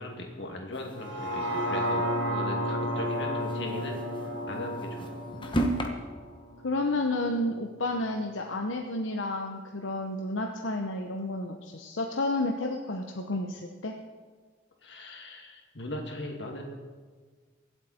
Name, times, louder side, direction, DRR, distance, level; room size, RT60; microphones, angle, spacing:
voice 1, 0.0-5.1 14.8-16.6, left 1 dB, 60° left, 1 dB, 2.4 m, -39 dB
sound 1, 0.7-1.9 2.2-2.3 2.6-2.7 3.3-5.9, right 1 dB, 25° left, 1.2 m, -33 dB
sound 2, 1.0-7.1 7.5-7.6, equal, 70° right, 2.4 m, -32 dB
voice 2, 6.6-13.9, left 2 dB, 85° left, 2 dB, 0.9 m, -31 dB
24.5 x 8.1 x 4.3 m, 1.5 s
head